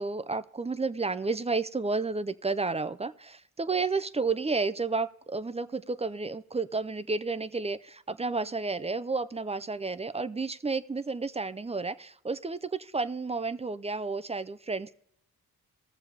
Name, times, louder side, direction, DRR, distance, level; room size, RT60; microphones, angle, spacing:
voice 1, 0.0-14.9, right 3 dB, 15° right, 15 dB, 0.4 m, -31 dB
19.0 x 7.0 x 3.4 m, 0.72 s
cardioid pair, 70°, 38 cm